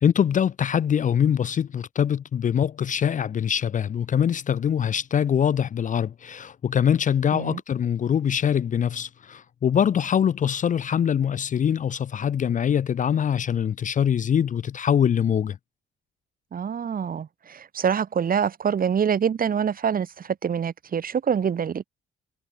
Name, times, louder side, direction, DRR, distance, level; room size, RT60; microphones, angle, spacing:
voice 1, 0.0-15.6, left 8 dB, 40° left, 0.5 m, -23 dB
voice 2, 16.5-21.8, right 7 dB, 45° right, 1.6 m, -25 dB
cardioid pair, 90°, 20 cm